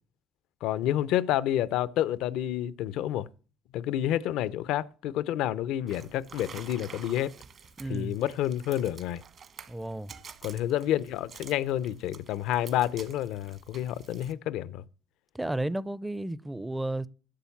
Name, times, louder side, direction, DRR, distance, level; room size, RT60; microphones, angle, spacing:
voice 1, 0.6-3.3 3.7-7.3 7.9-9.2 10.4-14.8, left 12 dB, 75° left, 0.5 m, -29 dB
sound 1, 5.9-14.3, right 6 dB, 50° right, 1.3 m, -49 dB
voice 2, 7.8-8.2 9.7-10.1 15.3-17.1, right 1 dB, 10° right, 0.5 m, -33 dB
11.5 x 7.0 x 7.1 m
cardioid pair, 95°, 0 cm